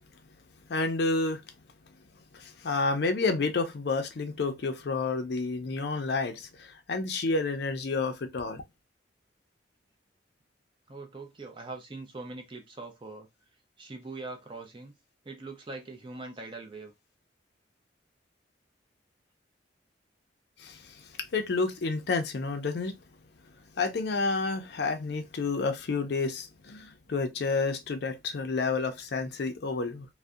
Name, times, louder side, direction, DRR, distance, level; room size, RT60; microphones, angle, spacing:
voice 1, 0.7-1.4 2.3-8.6 20.6-20.9 21.3-22.9 23.8-30.1, left 3 dB, 60° left, 0.4 m, -30 dB
voice 2, 10.9-13.3 13.8-14.9 15.2-16.9, right 3 dB, 25° right, 0.4 m, -42 dB
2.6 x 2.1 x 2.3 m
head